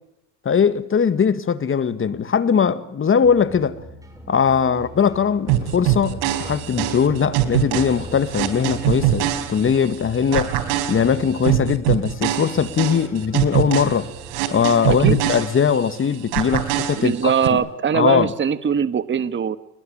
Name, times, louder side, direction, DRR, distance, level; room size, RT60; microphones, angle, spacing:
voice 1, 0.5-3.8 4.3-10.6 10.9-14.1 14.5-17.6 17.9-18.3, left 7 dB, 30° left, 1.9 m, -20 dB
sound 1, 3.2-15.1, equal, 10° right, 7.5 m, -40 dB
sound 2, 5.5-10.0 10.3-16.0 16.3-17.5, right 13 dB, 75° right, 4.4 m, -23 dB
voice 2, 14.9-15.2 17.0-19.6, right 7 dB, 25° right, 1.5 m, -21 dB
29.5 x 20.5 x 8.9 m
supercardioid pair, 95°, 42 cm